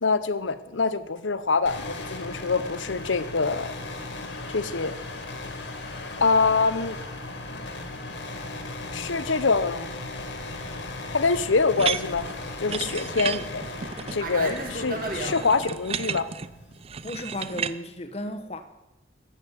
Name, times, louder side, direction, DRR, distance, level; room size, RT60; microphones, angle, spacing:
voice 1, 0.0-3.7 4.5-4.9 6.2-7.0 8.9-9.9 11.1-12.3 12.6-13.6 14.1-16.3, left 4 dB, 85° left, 0.9 m, -25 dB
sound 1, 1.7-17.6, left 2 dB, 70° left, 2.3 m, -37 dB
Fixed-wing aircraft airplane, 8.9-15.4, right 2 dB, 45° right, 2.2 m, -38 dB
Metal bar movement in container, 11.8-17.8, right 7 dB, 30° right, 0.4 m, -33 dB
voice 2, 17.0-18.6, left 1 dB, 35° left, 1.2 m, -34 dB
13.5 x 9.1 x 8.2 m
head